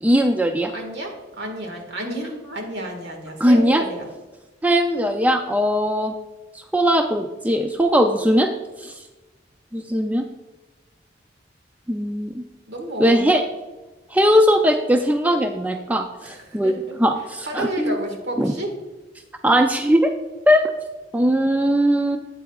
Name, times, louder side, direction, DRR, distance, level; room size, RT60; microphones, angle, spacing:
voice 1, 0.0-0.7 3.4-3.8 4.6-6.1 6.7-8.5 8.8-8.9 9.7-10.3 11.9-12.4 13.0-13.4 14.1-18.0 18.4-18.5 19.4-20.1 20.5-20.6 21.1-22.2, equal, 10° right, 5 dB, 0.3 m, -19 dB
voice 2, 0.7-4.1 12.7-13.3 16.2-17.0 17.5-18.7, right 1 dB, 65° right, 2 dB, 1.7 m, -31 dB
9.0 x 8.2 x 2.3 m, 1.2 s
head